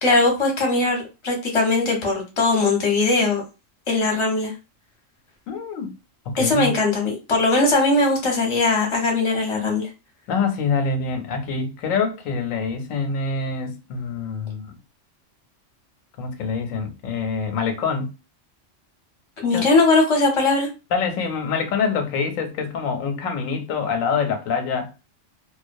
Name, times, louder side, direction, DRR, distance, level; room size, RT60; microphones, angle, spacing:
voice 1, 0.0-3.4 3.9-4.5 6.4-9.9 19.4-20.7, left 3 dB, 30° left, 0.7 m, -20 dB
voice 2, 5.5-6.0 6.3-6.8 10.3-14.7 16.2-18.1 19.5-19.6 20.9-24.9, left 5 dB, 85° left, 1.0 m, -25 dB
2.3 x 2.1 x 2.5 m
omnidirectional pair, 1.3 m